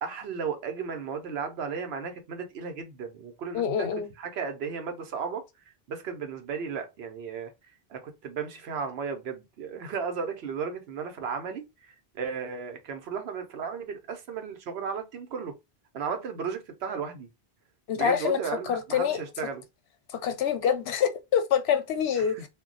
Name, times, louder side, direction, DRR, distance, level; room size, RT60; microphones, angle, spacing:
voice 1, 0.0-3.9 4.2-5.4 5.9-7.5 7.9-11.6 12.1-15.5 15.9-17.3 17.9-19.6 22.2-22.5, right 6 dB, 85° right, 0.9 m, -34 dB
voice 2, 3.5-4.1 17.9-18.4 18.7-19.2 20.2-22.4, left 8 dB, 90° left, 0.9 m, -26 dB
2.3 x 2.2 x 3.8 m
omnidirectional pair, 1.0 m